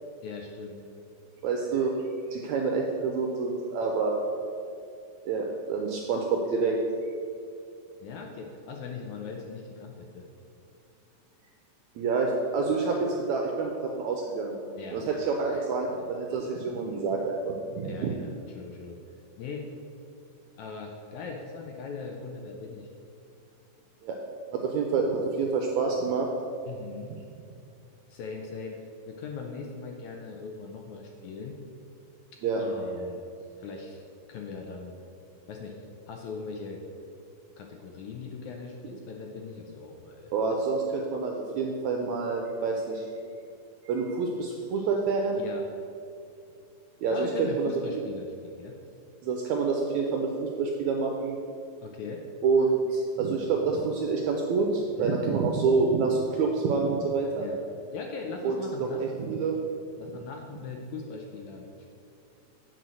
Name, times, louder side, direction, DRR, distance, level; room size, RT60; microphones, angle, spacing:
voice 1, 0.2-0.8 8.0-10.2 14.8-15.2 15.5-15.6 17.8-19.0 19.4-19.7 20.6-22.9 26.7-27.1 28.1-31.6 32.6-33.2 33.6-34.0 34.3-34.9 35.5-35.7 36.1-36.8 37.6-40.3 45.4-45.6 47.1-48.8 51.8-52.2 55.0-55.2 57.4-57.6 57.9-59.0 60.0-61.7, left 4 dB, 75° left, 1 dB, 1.8 m, -40 dB
voice 2, 1.4-1.9 2.3-4.2 5.2-6.8 12.0-14.6 14.9-18.1 24.0-24.1 24.7-26.3 32.4-32.6 40.3-43.0 43.8-45.4 47.0-48.0 49.2-51.4 52.4-57.5 58.4-58.6 59.0-59.6, right 4 dB, 80° right, 1 dB, 1.7 m, -27 dB
8.0 x 4.4 x 6.3 m, 2.5 s
omnidirectional pair, 3.9 m